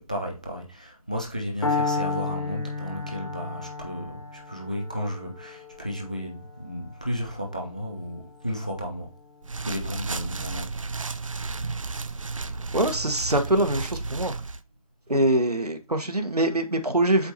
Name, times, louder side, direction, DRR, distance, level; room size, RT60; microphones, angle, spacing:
voice 1, 0.0-9.1 9.6-10.7, equal, 10° left, 0.4 m, -33 dB
Piano, 1.6-9.6, left 4 dB, 50° left, 2.2 m, -33 dB
sound 1, 9.4-14.6, right 3 dB, 60° right, 0.5 m, -33 dB
voice 2, 12.7-14.3 15.1-17.3, right 1 dB, 85° right, 1.3 m, -23 dB
7.9 x 4.8 x 2.9 m
figure-of-eight pair, 155°, 19 cm